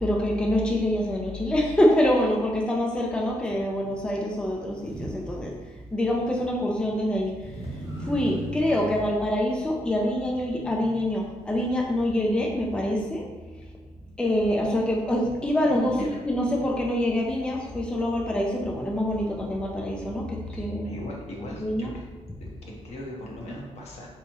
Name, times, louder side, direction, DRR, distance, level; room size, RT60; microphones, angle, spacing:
voice 1, 0.0-5.5 5.9-7.6 7.9-13.3 13.6-13.7 14.2-16.0 16.3-20.9 21.6-21.9, left 1 dB, 10° left, -1 dB, 0.5 m, -25 dB
Motor vehicle (road), 3.4-3.6 4.7-9.0, right 2 dB, 35° right, 1.3 m, -39 dB
voice 2, 15.9-16.2 20.5-22.0 22.4-24.2, left 1 dB, 60° left, -2 dB, 0.9 m, -39 dB
3.4 x 3.0 x 2.9 m, 1.3 s
cardioid pair, 95°, 12 cm